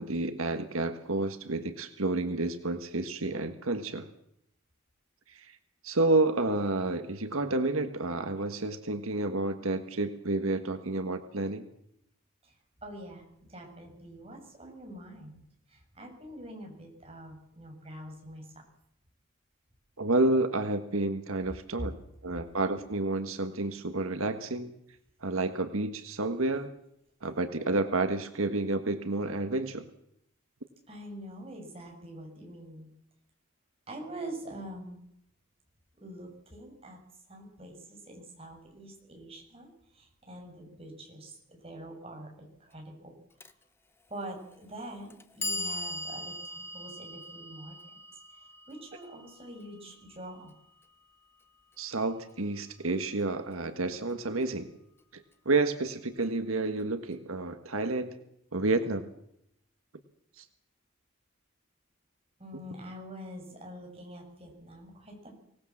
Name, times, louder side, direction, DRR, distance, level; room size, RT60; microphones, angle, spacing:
voice 1, 0.0-4.1 5.3-5.6 5.8-11.7 20.0-21.9 22.2-24.7 25.2-26.7 27.2-29.8 51.8-54.7 55.1-58.1 58.5-59.1 60.4-60.5, right 2 dB, 85° right, 8 dB, 1.5 m, -30 dB
voice 2, 12.8-13.2 13.5-15.4 15.7-18.5 30.9-32.9 33.9-35.0 36.0-37.0 37.3-43.1 44.1-50.5 62.4-65.3, right 1 dB, 30° right, 1 dB, 7.2 m, -45 dB
Clock, 43.4-43.5 44.5-44.6 45.1-51.1, left 1 dB, 10° left, 1.0 m, -40 dB
25.0 x 18.5 x 7.3 m, 0.76 s
head